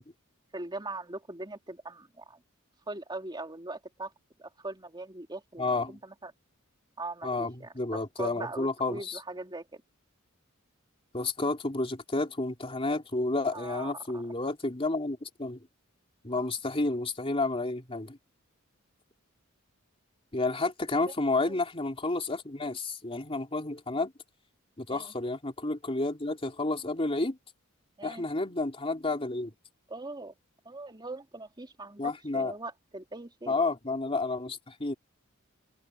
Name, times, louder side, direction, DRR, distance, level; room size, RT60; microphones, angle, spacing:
voice 1, 0.5-2.4 2.9-4.1 4.4-6.3 7.0-7.7 8.2-9.8 13.5-14.2 16.3-16.5 21.5-21.6 24.9-25.1 28.0-28.2 29.9-30.3 30.7-33.6, right 2 dB, 20° right, 3.3 m, -41 dB
voice 2, 5.6-6.0 7.2-9.2 11.1-15.6 16.2-18.2 20.3-24.1 24.8-27.4 28.0-29.5 32.0-32.5 33.5-35.0, left 2 dB, 30° left, 3.3 m, -31 dB
head